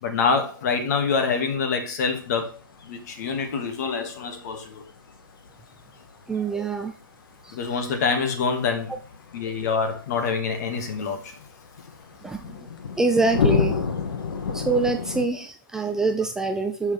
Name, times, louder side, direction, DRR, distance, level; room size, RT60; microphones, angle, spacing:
voice 1, 0.0-4.8 7.5-9.0 9.3-11.3, left 5 dB, 45° left, 2.1 m, -26 dB
sound 1, 2.0-15.3, left 5 dB, 70° left, 1.6 m, -32 dB
voice 2, 6.3-6.9 12.2-12.4 13.0-13.8 14.5-16.9, right 3 dB, 5° right, 0.4 m, -24 dB
10.5 x 6.4 x 3.5 m
hypercardioid pair, 155°, 12 cm